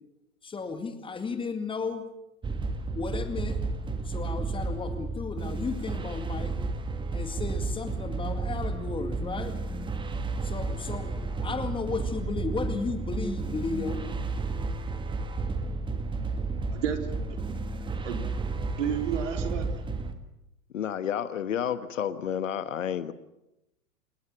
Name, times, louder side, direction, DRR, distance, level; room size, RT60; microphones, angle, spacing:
voice 1, 0.4-2.1 2.9-3.6 4.0-6.6 7.1-9.6 10.4-14.0, left 4 dB, 10° left, 8 dB, 2.1 m, -34 dB
sound 1, 2.4-20.1, right 3 dB, 10° right, 1.7 m, -32 dB
voice 2, 16.7-17.6 18.0-18.3 18.8-19.7, right 8 dB, 55° right, 5 dB, 4.0 m, -32 dB
voice 3, 20.7-23.1, left 9 dB, 60° left, 13 dB, 1.5 m, -30 dB
28.5 x 17.5 x 7.6 m, 0.89 s
figure-of-eight pair, 100°, 43 cm